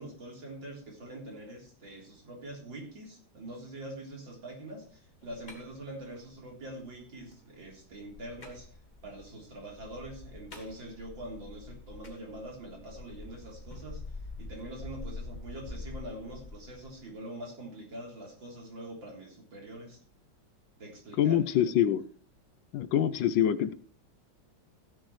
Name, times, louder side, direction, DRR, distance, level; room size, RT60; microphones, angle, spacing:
voice 1, 0.0-8.7 9.0-14.0 14.4-20.0 20.8-21.4, right 1 dB, 65° right, 0 dB, 4.2 m, -44 dB
sound 1, 4.9-17.1, left 2 dB, 25° left, 1.8 m, -46 dB
voice 2, 21.2-22.0 22.7-23.7, left 10 dB, 75° left, 13 dB, 1.3 m, -25 dB
15.5 x 10.0 x 3.1 m, 0.44 s
omnidirectional pair, 2.2 m